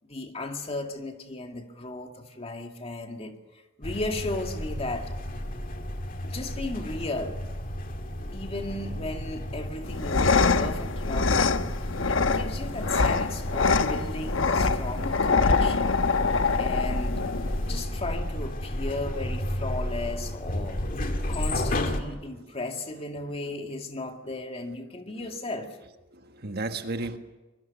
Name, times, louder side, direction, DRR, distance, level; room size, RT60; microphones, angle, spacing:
voice 1, 0.0-5.1 6.2-7.4 8.3-11.7 12.0-16.0 16.6-17.2 17.6-20.9 21.3-25.7, left 2 dB, 30° left, 4 dB, 2.2 m, -35 dB
sound 1, 3.8-22.0, left 1 dB, 45° left, 2.2 m, -32 dB
sound 2, 9.8-17.8, left 4 dB, 85° left, 1.1 m, -25 dB
voice 2, 17.3-18.0 20.6-20.9 21.2-21.7 22.0-22.6 22.9-23.6 25.0-25.4 26.1-27.2, right 2 dB, 55° right, 7 dB, 1.5 m, -39 dB
24.5 x 22.0 x 7.1 m, 1.1 s
head